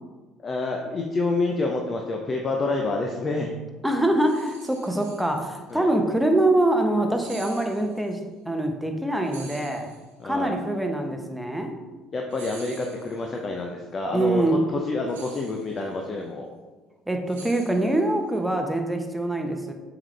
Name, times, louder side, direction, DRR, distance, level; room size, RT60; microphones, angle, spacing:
voice 1, 0.4-3.5 5.7-5.9 10.2-10.5 12.1-14.4 14.8-16.5, left 3 dB, 35° left, 1 dB, 0.7 m, -28 dB
voice 2, 3.8-8.2 8.5-9.9 10.2-11.7 14.1-14.6 17.1-19.7, right 1 dB, 5° right, 4 dB, 1.0 m, -24 dB
sound 1, 4.2-5.7 7.1-8.2 9.2-10.4 12.3-13.4 15.1-16.0 17.3-18.3, right 4 dB, 80° right, 1.0 m, -47 dB
7.2 x 4.9 x 3.3 m, 1.3 s
hypercardioid pair, 60°, 0 cm